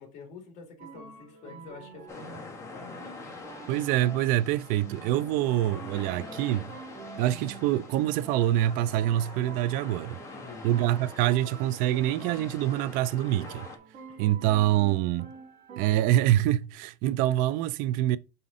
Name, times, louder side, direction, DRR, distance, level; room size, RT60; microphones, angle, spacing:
voice 1, 0.0-3.0 10.3-10.7 14.1-14.2, left 5 dB, 55° left, 2.1 m, -47 dB
sound 1, 0.8-16.4, right 4 dB, 55° right, 3.2 m, -47 dB
sound 2, 2.1-13.8, left 3 dB, 20° left, 1.4 m, -45 dB
voice 2, 3.7-6.8 7.2-10.2 10.6-13.7 14.2-15.3 15.8-18.2, right 13 dB, 70° right, 0.4 m, -25 dB
5.6 x 5.2 x 3.7 m
cardioid pair, 170°, 15 cm